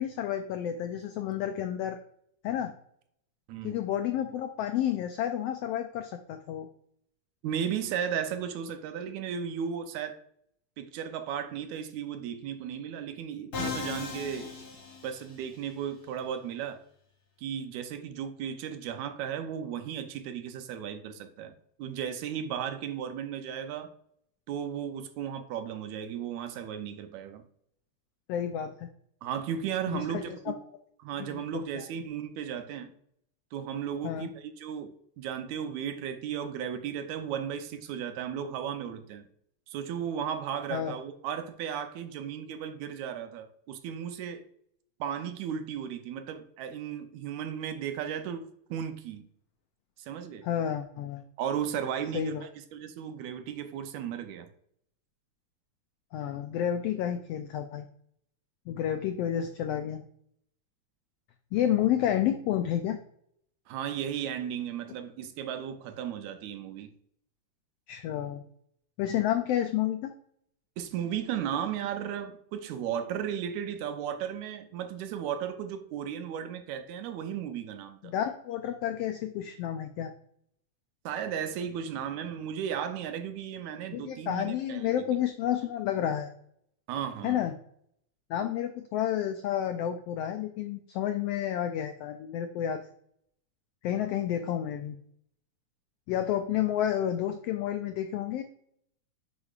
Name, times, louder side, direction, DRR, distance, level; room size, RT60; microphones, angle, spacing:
voice 1, 0.0-2.0 2.4-2.7 3.6-6.7 28.3-28.9 29.9-30.5 31.2-31.4 31.7-31.8 34.0-34.3 40.7-41.0 50.4-51.2 52.1-52.4 56.1-57.9 58.7-60.0 61.5-63.0 67.9-68.4 69.0-70.1 78.0-80.1 83.9-86.3 87.2-87.5 88.3-92.9 93.8-95.0 96.1-98.4, left 10 dB, 85° left, 7 dB, 1.4 m, -30 dB
voice 2, 3.5-3.8 7.4-10.2 10.8-14.5 15.0-16.8 17.4-23.9 24.5-27.5 29.2-30.6 31.0-32.9 33.5-34.9 35.2-39.3 39.7-44.4 45.0-49.3 50.0-50.5 51.4-54.5 63.7-66.9 70.8-78.1 81.1-85.0 86.9-87.4, right 8 dB, 80° right, 8 dB, 2.0 m, -35 dB
Musical instrument, 13.5-15.6, left 4 dB, 50° left, 1.3 m, -37 dB
8.2 x 5.0 x 2.4 m, 0.67 s
omnidirectional pair, 3.3 m